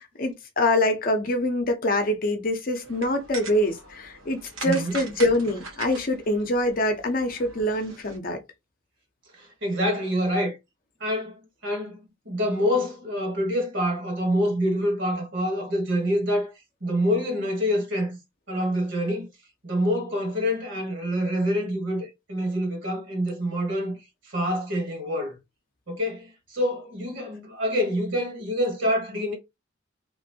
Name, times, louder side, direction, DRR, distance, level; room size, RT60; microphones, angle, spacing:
voice 1, 0.0-8.4, left 1 dB, 45° left, 0.6 m, -25 dB
sound 1, 2.8-8.2, right 4 dB, 80° right, 1.1 m, -41 dB
voice 2, 4.6-4.9 9.4-10.6 11.0-16.5 16.8-18.2 18.5-19.3 19.6-24.0 24.2-25.4 25.9-29.3, equal, 60° right, 1.5 m, -26 dB
3.0 x 2.6 x 2.7 m
head